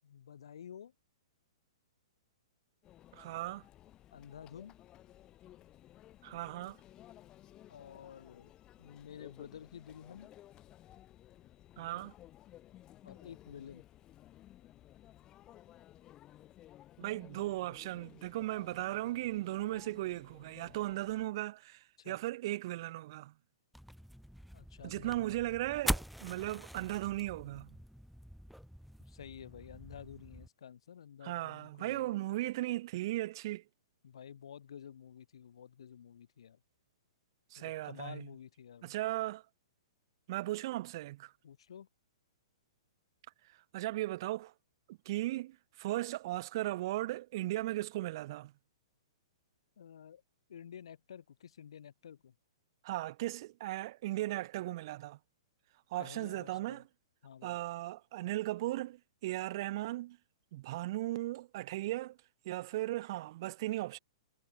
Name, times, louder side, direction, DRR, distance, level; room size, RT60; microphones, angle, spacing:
voice 1, 0.0-0.9 4.1-4.7 7.7-8.5 8.8-10.3 13.0-13.8 22.0-22.2 24.5-25.4 29.1-32.1 34.0-36.6 37.5-39.0 41.4-41.9 49.8-50.2 50.5-52.3 56.0-56.8 57.2-57.6, left 8 dB, 75° left, 4.4 m, -51 dB
Conversation / Chatter / Crowd, 2.8-21.3, left 13 dB, 25° left, 3.2 m, -57 dB
voice 2, 3.1-3.6 6.2-6.8 11.8-12.1 17.0-23.3 24.8-27.8 31.2-33.6 37.5-38.3 38.8-39.4 40.3-41.3 43.5-44.5 44.9-48.5 52.8-55.2 55.9-56.8 57.4-60.2 60.5-62.2 62.4-64.0, right 17 dB, 50° right, 3.0 m, -37 dB
sound 1, 23.7-30.5, equal, ahead, 0.9 m, -42 dB
hypercardioid pair, 140°, 3 cm